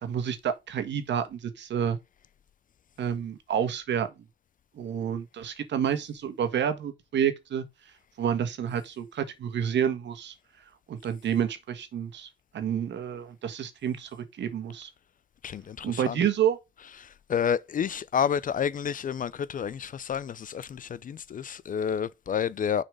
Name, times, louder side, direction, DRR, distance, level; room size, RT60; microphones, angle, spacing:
voice 1, 0.0-2.0 3.0-4.1 4.8-7.6 8.2-10.3 10.9-12.3 12.5-14.9 15.8-16.6, right 8 dB, 65° right, 1.5 m, -29 dB
voice 2, 15.4-16.2 17.0-22.8, left 8 dB, 40° left, 0.5 m, -30 dB
6.4 x 4.2 x 5.0 m
cardioid pair, 90°, 20 cm